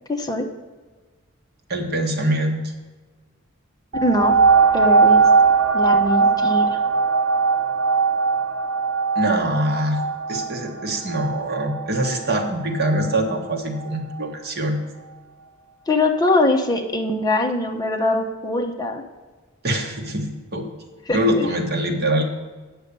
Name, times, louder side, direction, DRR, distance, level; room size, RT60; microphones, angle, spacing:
voice 1, 0.1-0.5 3.9-4.4 4.7-5.3 5.7-6.8 15.9-19.0 21.1-21.5, left 2 dB, 20° left, 3 dB, 0.8 m, -22 dB
voice 2, 1.7-2.7 9.2-10.0 10.3-14.8 19.6-20.7 21.1-22.2, right 1 dB, 50° right, 2 dB, 1.2 m, -23 dB
sound 1, 3.9-13.2 13.8-13.9, right 5 dB, 80° right, 1.0 m, -19 dB
8.2 x 6.3 x 6.7 m, 1.3 s
head